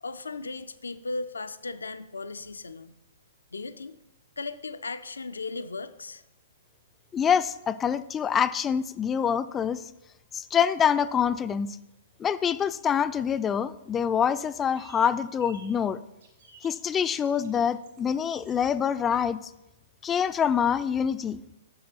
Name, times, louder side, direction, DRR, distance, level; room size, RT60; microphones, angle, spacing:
voice 1, 0.0-2.9 3.5-4.0 4.4-6.2, left 3 dB, 80° left, 13 dB, 0.4 m, -36 dB
voice 2, 7.1-9.9 10.3-11.8 12.2-16.0 16.6-19.4 20.0-21.4, left 7 dB, 20° left, 14 dB, 0.3 m, -26 dB
sound 1, 14.8-15.1 15.4-15.7 16.2-16.7 17.0-18.7, right 5 dB, 65° right, 1.9 m, -53 dB
7.7 x 6.5 x 4.1 m, 0.90 s
figure-of-eight pair, 115°, 0 cm